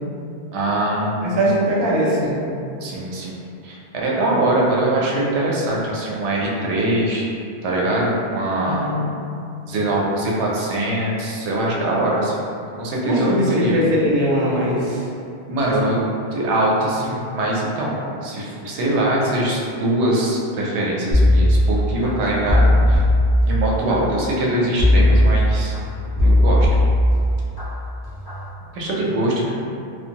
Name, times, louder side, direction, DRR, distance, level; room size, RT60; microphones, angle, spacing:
voice 1, 0.5-1.4 2.8-7.2 7.6-8.9 9.7-12.4 12.8-13.8 15.5-16.0 16.3-18.0 18.2-23.0 23.5-25.7 26.2-26.7 28.7-29.5, right 1 dB, 90° right, -3 dB, 0.9 m, -22 dB
voice 2, 1.2-2.4 8.6-9.0 13.0-15.0 15.6-15.7, equal, 45° right, -5 dB, 0.3 m, -20 dB
sound 1, 21.1-22.1 22.5-23.9 24.8-25.8 26.2-27.6 28.0-28.4, left 1 dB, 25° left, 0.6 m, -16 dB
2.5 x 2.2 x 2.8 m, 2.5 s
omnidirectional pair, 1.1 m